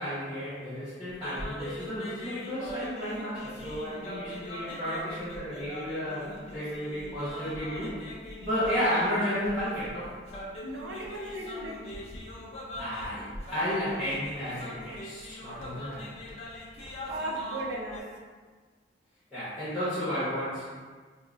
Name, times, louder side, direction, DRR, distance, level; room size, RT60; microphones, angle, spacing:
voice 1, 0.0-8.0 8.4-10.1 12.8-16.0 19.3-20.7, equal, 5° right, -13 dB, 1.0 m, -32 dB
sound 1, 1.1-18.0, equal, 35° left, 0.5 m, -42 dB
voice 2, 10.6-11.8 17.1-18.2, right 1 dB, 85° right, -2 dB, 0.5 m, -36 dB
4.4 x 2.1 x 2.4 m, 1.5 s
head